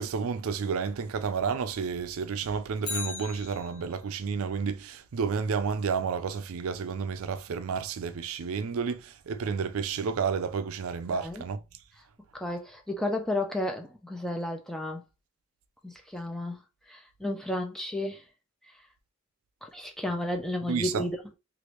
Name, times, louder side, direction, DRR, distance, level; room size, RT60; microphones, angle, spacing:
voice 1, 0.0-11.6 20.7-21.0, right 6 dB, 70° right, 0.4 m, -31 dB
Bicycle, 2.8-4.2 12.5-12.6, left 5 dB, 85° left, 1.3 m, -38 dB
voice 2, 11.1-11.4 12.3-15.0 15.8-16.6 16.9-18.2 19.6-21.1, left 1 dB, ahead, 0.4 m, -32 dB
3.2 x 2.5 x 3.0 m
head